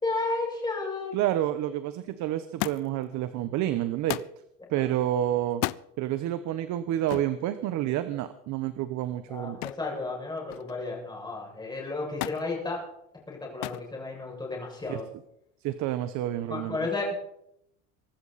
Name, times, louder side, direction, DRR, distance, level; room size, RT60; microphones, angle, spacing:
voice 1, 0.0-1.2 4.7-4.8 9.3-12.8 13.3-15.1 16.5-17.1, left 3 dB, 15° left, -2 dB, 6.7 m, -33 dB
voice 2, 1.1-4.2 4.7-5.6 6.0-9.6 14.9-15.0 15.6-16.8, right 12 dB, 60° right, 11 dB, 1.1 m, -29 dB
Thump thud, 2.6-3.1 4.1-4.4 5.5-5.9 7.1-7.4 9.6-9.9 10.3-10.8 12.2-12.5 13.6-13.9 14.8-15.3 16.3-16.4, left 21 dB, 90° left, 0.6 m, -34 dB
23.5 x 12.5 x 4.2 m, 0.76 s
cardioid pair, 140°, 33 cm